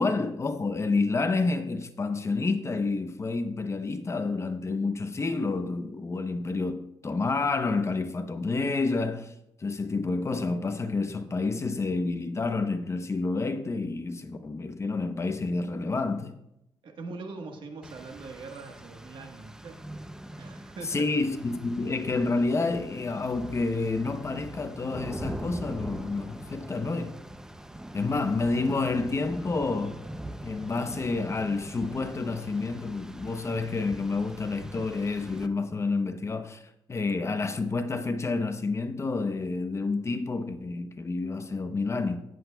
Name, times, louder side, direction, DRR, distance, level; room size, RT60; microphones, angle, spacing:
voice 1, 0.0-9.3 9.6-16.3 20.8-27.2 27.9-30.0 30.4-42.2, left 3 dB, 30° left, 0.8 m, -29 dB
voice 2, 16.8-19.8 20.4-21.1, right 3 dB, 65° right, 1.4 m, -42 dB
Rain, 17.8-35.5, right 1 dB, 5° right, 0.6 m, -42 dB
16.5 x 7.9 x 2.3 m
cardioid pair, 95°, 9 cm